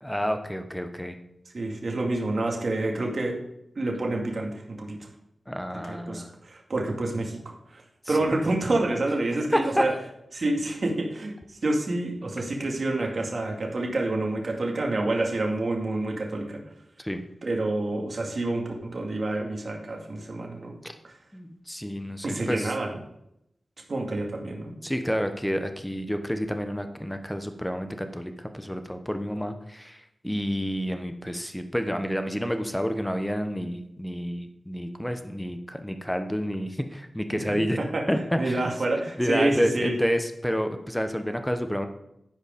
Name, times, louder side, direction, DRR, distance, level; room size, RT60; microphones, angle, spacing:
voice 1, 0.0-1.2 5.5-6.3 8.1-8.3 9.5-9.8 17.0-17.2 21.3-22.7 24.8-37.8 38.1-38.6 39.2-41.9, equal, 5° left, 7 dB, 1.0 m, -29 dB
voice 2, 1.5-3.4 3.8-5.1 5.9-7.8 8.1-9.9 10.3-16.6 17.4-20.7 21.0-21.1 22.2-22.9 23.9-24.7 37.8-38.1 38.4-40.0, right 2 dB, 60° right, 1 dB, 2.2 m, -28 dB
12.5 x 5.0 x 5.2 m, 0.81 s
cardioid pair, 55°, 0 cm